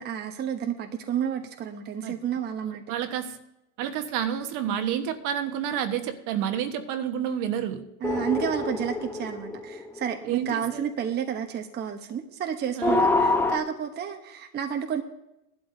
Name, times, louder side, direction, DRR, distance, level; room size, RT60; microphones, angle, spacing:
voice 1, 0.0-2.8 8.0-15.0, right 8 dB, 20° right, 5 dB, 1.0 m, -31 dB
voice 2, 2.6-3.4 3.8-7.9 10.2-10.9 12.8-13.0, right 9 dB, 45° right, 8 dB, 1.3 m, -30 dB
sound 1, 8.0-10.6 12.8-13.6, left 3 dB, 5° left, 0.9 m, -26 dB
18.5 x 12.0 x 2.7 m, 0.88 s
hypercardioid pair, 110°, 44 cm